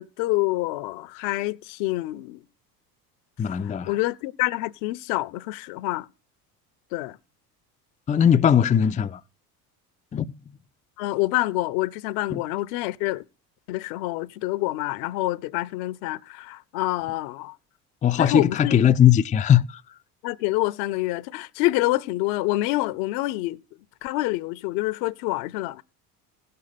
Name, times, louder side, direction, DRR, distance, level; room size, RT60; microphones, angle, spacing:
voice 1, 0.0-2.4 3.6-6.1 6.9-7.2 11.0-13.2 13.7-17.5 18.2-18.8 20.2-23.6 24.0-25.8, left 18 dB, 65° left, 0.9 m, -27 dB
voice 2, 3.4-4.0 8.1-9.2 10.1-10.3 12.3-12.4 18.0-19.8, left 9 dB, 15° left, 0.5 m, -19 dB
16.5 x 6.6 x 4.1 m
hypercardioid pair, 75°, 48 cm